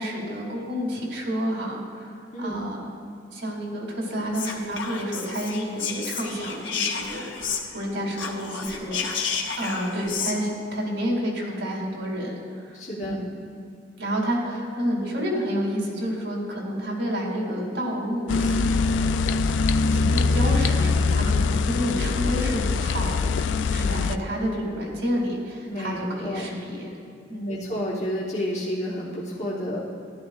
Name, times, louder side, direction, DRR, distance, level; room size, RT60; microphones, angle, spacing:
voice 1, 0.0-2.9 3.3-12.7 13.0-13.3 14.0-19.4 19.8-23.4 23.7-27.0 27.3-27.7, equal, 75° right, -1 dB, 2.5 m, -30 dB
Whispering, 4.3-7.9 8.1-10.4, left 6 dB, 90° left, 0.9 m, -31 dB
voice 2, 12.7-13.2 23.7-24.2 25.7-26.5 27.5-29.8, equal, 40° left, -6 dB, 1.1 m, -31 dB
sound 1, 18.3-24.2, left 4 dB, 75° left, 0.3 m, -23 dB
14.0 x 11.0 x 2.4 m, 2.4 s
head